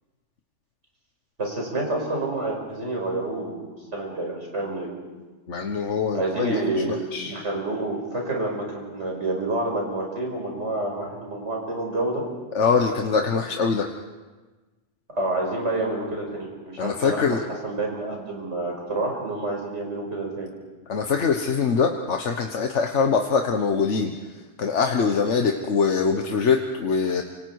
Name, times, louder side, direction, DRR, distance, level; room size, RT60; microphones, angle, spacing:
voice 1, 1.4-4.9 6.1-7.0 7.2-12.3 15.1-17.4 17.6-20.5, right 2 dB, 90° right, 0 dB, 6.0 m, -28 dB
voice 2, 5.5-6.6 6.9-7.3 12.5-13.9 16.8-17.4 20.9-27.2, left 5 dB, 90° left, 4 dB, 1.5 m, -23 dB
29.0 x 26.0 x 4.8 m, 1.3 s
omnidirectional pair, 1.2 m